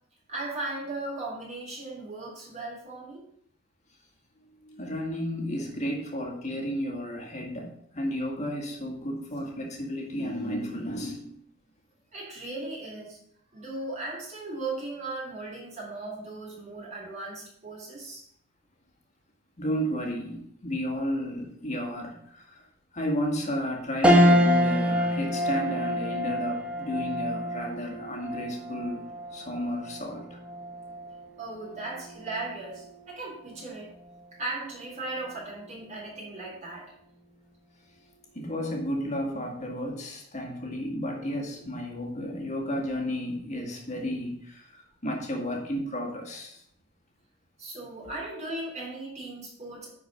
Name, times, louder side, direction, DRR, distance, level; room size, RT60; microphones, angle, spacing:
voice 1, 0.3-3.2 12.1-13.2 13.5-18.3 31.4-33.9 34.4-36.9 47.6-49.9, right 2 dB, 35° right, -3 dB, 3.4 m, -37 dB
voice 2, 4.6-11.4 19.6-22.7 22.9-29.1 29.3-30.4 38.3-46.6, equal, 35° left, 1 dB, 1.8 m, -33 dB
sound 1, 24.0-33.6 34.1-34.2 35.5-36.0, equal, 5° right, 1.0 m, -27 dB
9.7 x 4.6 x 5.5 m, 0.69 s
head